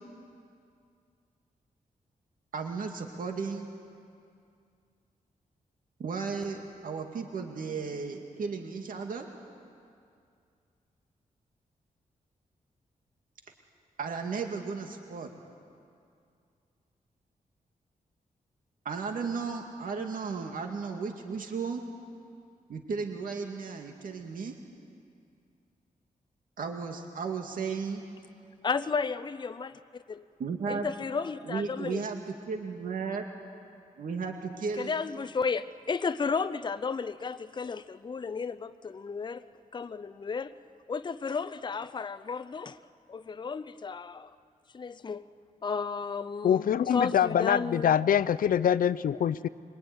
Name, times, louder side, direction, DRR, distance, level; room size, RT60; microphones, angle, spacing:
voice 1, 2.5-3.7 6.0-9.3 14.0-15.3 18.8-21.8 22.7-24.5 26.6-28.0 30.4-30.9 31.4-32.2 32.5-33.3 34.0-34.9, right 5 dB, 75° right, 3 dB, 2.3 m, -34 dB
voice 2, 28.6-29.8 30.1-30.3 30.7-32.0 34.8-39.4 39.7-40.5 40.9-42.8 43.1-44.3 44.7-45.3 45.6-47.9, left 5 dB, 30° left, 12 dB, 0.7 m, -33 dB
voice 3, 46.4-49.5, left 9 dB, 80° left, 16 dB, 0.6 m, -24 dB
25.5 x 23.5 x 9.7 m, 2.4 s
wide cardioid pair, 145°, 14 cm